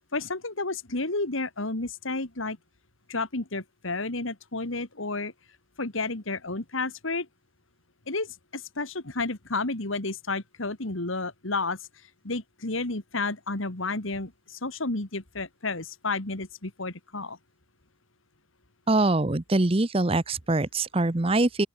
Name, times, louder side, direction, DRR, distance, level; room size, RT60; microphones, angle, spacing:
voice 1, 0.1-2.6 3.1-5.3 5.8-7.3 8.1-11.8 12.2-17.4, left 3 dB, 75° left, 2.4 m, -31 dB
voice 2, 18.9-21.7, right 2 dB, 30° right, 0.8 m, -23 dB
open air
head